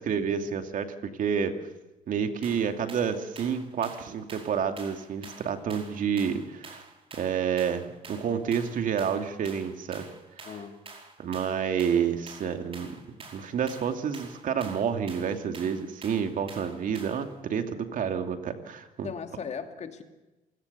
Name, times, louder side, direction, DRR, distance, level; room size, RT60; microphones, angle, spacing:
voice 1, 0.0-1.6 2.1-6.8 7.1-10.1 11.2-12.9 13.3-19.1, right 7 dB, 60° right, 7 dB, 2.5 m, -29 dB
sound 1, 2.4-17.3, right 3 dB, 35° right, 5.0 m, -48 dB
voice 2, 10.4-10.9 16.6-16.8 19.0-20.0, left 6 dB, 45° left, 6 dB, 2.7 m, -38 dB
27.0 x 17.5 x 6.9 m, 1.1 s
cardioid pair, 85°, 16 cm